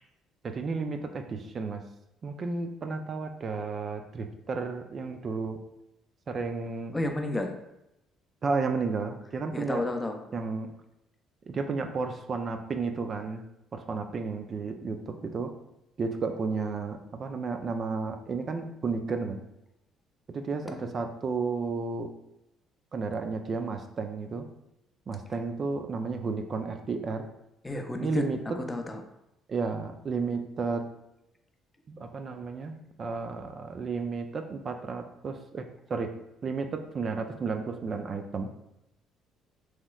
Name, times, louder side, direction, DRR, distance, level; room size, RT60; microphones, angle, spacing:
voice 1, 0.4-1.8 2.2-5.6 6.3-6.9 8.4-9.8 10.3-10.7 11.5-13.4 13.7-15.5 16.0-19.4 20.3-22.1 22.9-24.5 25.1-27.2 28.0-28.6 29.5-30.9 31.9-36.1 36.4-38.5, right 4 dB, 45° right, 6 dB, 0.3 m, -32 dB
voice 2, 6.9-7.6 9.5-10.2 20.7-20.8 27.6-28.3 28.6-29.0, left 1 dB, 20° left, 5 dB, 0.5 m, -31 dB
3.0 x 3.0 x 2.3 m, 0.86 s
hypercardioid pair, 55°, 0 cm